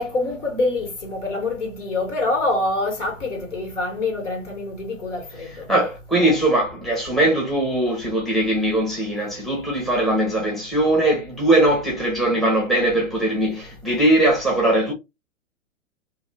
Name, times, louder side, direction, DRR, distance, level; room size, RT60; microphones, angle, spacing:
voice 1, 0.0-5.7, left 2 dB, 65° left, 1.9 m, -25 dB
voice 2, 5.7-14.9, right 1 dB, ahead, 0.9 m, -20 dB
3.1 x 2.8 x 2.8 m
figure-of-eight pair, 110°, 40 cm